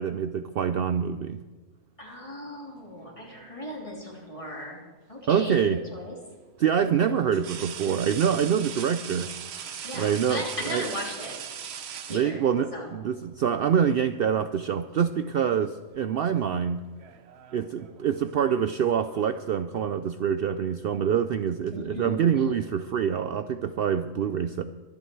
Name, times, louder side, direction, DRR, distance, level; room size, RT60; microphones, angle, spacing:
voice 1, 0.0-1.4 5.3-5.8 6.6-9.3 9.9-10.4 10.7-10.8 12.1-16.8 17.5-24.6, right 8 dB, 70° right, 10 dB, 0.5 m, -25 dB
voice 2, 2.0-4.8 5.1-6.1 7.0-7.4 9.8-11.4 12.1-12.4 12.7-12.9 21.7-22.6, left 1 dB, 20° left, -2 dB, 3.4 m, -37 dB
sound 1, 3.0-3.9 5.6-5.8 7.3-12.8 14.0-14.2 14.6-15.3 15.6-16.0 16.8-19.4, right 8 dB, 50° right, 0.9 m, -41 dB
24.0 x 9.7 x 4.6 m, 1.4 s
omnidirectional pair, 1.6 m